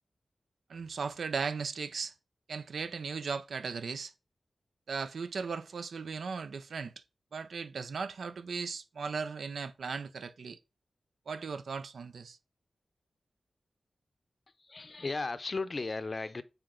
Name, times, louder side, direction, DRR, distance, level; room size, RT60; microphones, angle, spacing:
voice 1, 0.7-2.1 2.5-4.1 4.9-6.9 7.3-10.6 11.3-12.4, right 5 dB, 85° right, 0.6 m, -37 dB
voice 2, 14.6-16.4, left 3 dB, 40° left, 0.6 m, -35 dB
8.8 x 3.9 x 3.8 m
wide cardioid pair, 95°, 0 cm